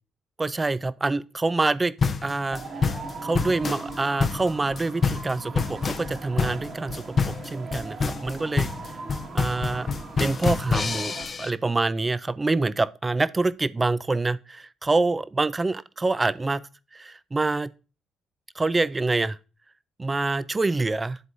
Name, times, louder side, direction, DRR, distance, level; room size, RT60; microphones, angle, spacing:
voice 1, 0.4-1.9 2.2-2.6 3.2-7.0 7.4-8.7 9.3-16.6 16.9-17.7 18.6-19.4 20.0-21.2, right 3 dB, 20° right, 0.4 m, -26 dB
sound 1, 2.0-11.5, left 5 dB, 40° left, 0.7 m, -27 dB
sound 2, 2.5-11.3, right 4 dB, 50° right, 1.7 m, -39 dB
11.0 x 3.8 x 2.6 m
cardioid pair, 90°, 0 cm